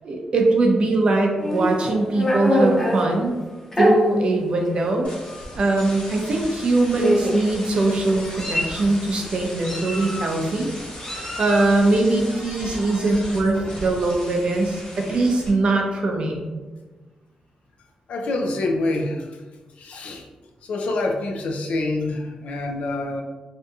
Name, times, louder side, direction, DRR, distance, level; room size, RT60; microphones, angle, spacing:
voice 1, 0.0-3.3 3.8-5.1 5.5-10.7 11.1-16.5, right 2 dB, 55° right, 1 dB, 0.5 m, -21 dB
Meow, 1.4-3.0 3.7-3.9 4.8-4.9 5.2-5.5 6.5-6.6 7.0-7.5 8.1-8.8 9.6-10.4 11.0-11.7, equal, 20° left, 0.6 m, -24 dB
sound 1, 5.0-15.5, left 1 dB, 55° left, 1.2 m, -37 dB
voice 2, 18.1-19.4 19.8-20.3 20.6-23.2, left 2 dB, 85° left, 2 dB, 0.3 m, -26 dB
2.6 x 2.2 x 2.7 m, 1.3 s
wide cardioid pair, 110°, 2 cm